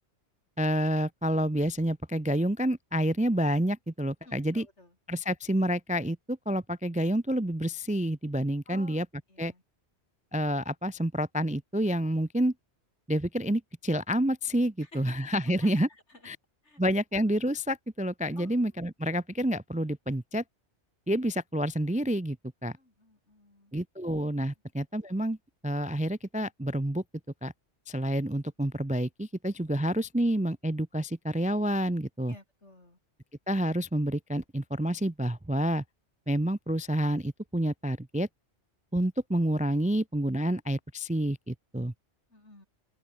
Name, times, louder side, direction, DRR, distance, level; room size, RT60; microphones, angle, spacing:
voice 1, 0.6-4.7 5.1-9.1 9.4-9.5 10.3-12.5 13.1-15.9 16.2-16.4 16.8-20.4 21.1-22.4 22.6-22.7 23.7-25.4 25.6-27.0 27.4-27.5 27.9-32.4 33.5-35.8 36.3-38.3 38.9-41.9, equal, 10° right, 0.4 m, -28 dB
voice 2, 4.2-4.9 8.7-9.0 9.3-9.6 14.9-15.2 15.6-15.9 16.6-16.8 18.4-18.6 22.7-23.7 32.3-33.0 42.3-42.7, left 2 dB, 80° left, 6.2 m, -52 dB
open air
omnidirectional pair, 1.2 m